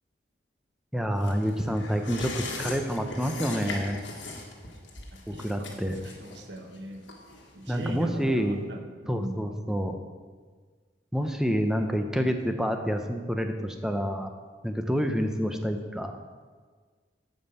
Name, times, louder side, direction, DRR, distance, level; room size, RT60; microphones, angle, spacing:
voice 1, 0.9-4.0 5.3-6.0 7.7-8.6 9.1-10.0 11.1-14.3 14.6-16.2, equal, 5° right, 5 dB, 0.6 m, -28 dB
sound 1, 1.2-8.3 8.6-8.7, left 3 dB, 80° left, 1.5 m, -40 dB
voice 2, 5.3-7.0 7.5-9.4, right 1 dB, 70° right, 4 dB, 1.1 m, -41 dB
9.5 x 5.4 x 6.9 m, 1.5 s
head